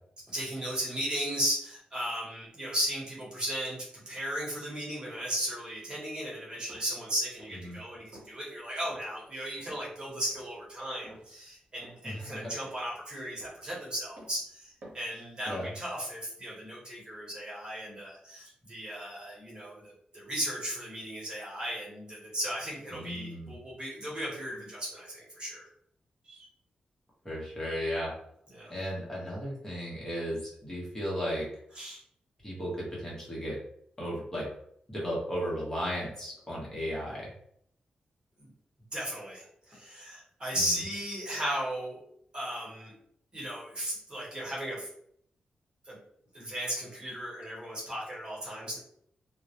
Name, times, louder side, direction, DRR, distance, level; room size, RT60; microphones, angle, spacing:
voice 1, 0.3-25.7 26.2-26.5 28.5-28.7 31.8-32.0 38.4-38.5 38.9-42.0 42.3-42.9 43.3-44.9 45.9-46.0 46.3-48.8, equal, 30° right, -5 dB, 1.0 m, -36 dB
sound 1, 6.7-7.0 7.4-7.7 8.1-8.4 8.9-9.1 9.6-9.9 10.3-10.6 11.0-11.3 11.8-12.2 12.6-13.0 13.4-13.7 14.2-14.4 14.8-15.2 15.5-15.8, right 1 dB, 75° right, 0.8 m, -53 dB
voice 2, 12.0-12.5 15.4-15.7 22.9-23.6 27.2-28.1 28.7-31.5 32.4-33.6 34.0-34.5 34.9-37.3 40.5-40.8, equal, 20° left, -5 dB, 0.9 m, -35 dB
2.2 x 2.0 x 2.7 m, 0.68 s
wide cardioid pair, 120°, 3 cm